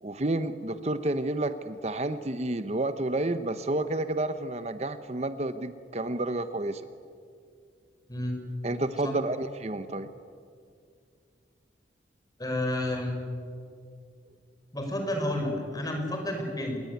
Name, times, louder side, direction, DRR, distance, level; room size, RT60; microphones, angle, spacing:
voice 1, 0.0-6.8 8.6-10.1, right 2 dB, 40° right, 11 dB, 0.8 m, -30 dB
voice 2, 12.4-13.1 14.7-16.8, left 1 dB, 20° left, 3 dB, 5.3 m, -30 dB
27.0 x 21.5 x 9.4 m, 2.3 s
head